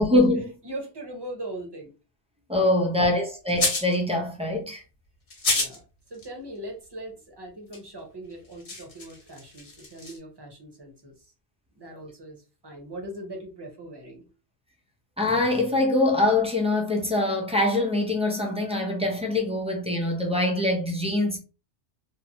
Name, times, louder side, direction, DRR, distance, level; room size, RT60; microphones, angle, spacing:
voice 1, 0.0-0.5 2.5-4.8 15.2-21.4, left 2 dB, 10° right, 0.3 m, -24 dB
voice 2, 0.6-1.9 5.5-11.3 11.7-14.3, right 1 dB, 25° right, 0.7 m, -40 dB
sound 1, 3.5-3.9 5.3-5.8 6.1-6.3 7.7-7.8 8.3-10.2, left 2 dB, 55° left, 1.1 m, -28 dB
3.0 x 2.0 x 2.6 m
omnidirectional pair, 1.2 m